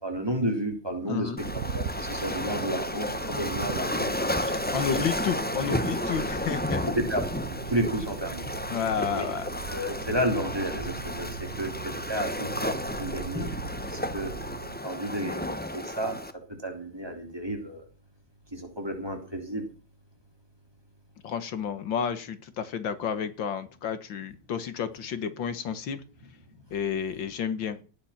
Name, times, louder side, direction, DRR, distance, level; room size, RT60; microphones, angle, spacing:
voice 1, 0.0-1.3 1.7-4.5 4.9-5.0 7.0-7.2 7.7-8.4 9.1-9.3 9.7-13.5 13.9-14.3 14.8-16.2 16.6-17.8 18.5-19.6, equal, 10° right, 2 dB, 3.6 m, -32 dB
voice 2, 1.1-1.4 4.7-6.8 8.7-9.5 21.2-26.0 26.7-27.8, left 7 dB, 75° left, 11 dB, 2.0 m, -31 dB
Waves surf, 1.4-16.3, left 1 dB, 10° left, 0.4 m, -32 dB
sound 1, 1.4-14.8, right 6 dB, 45° right, 1.3 m, -39 dB
18.0 x 9.7 x 5.9 m, 0.38 s
omnidirectional pair, 2.1 m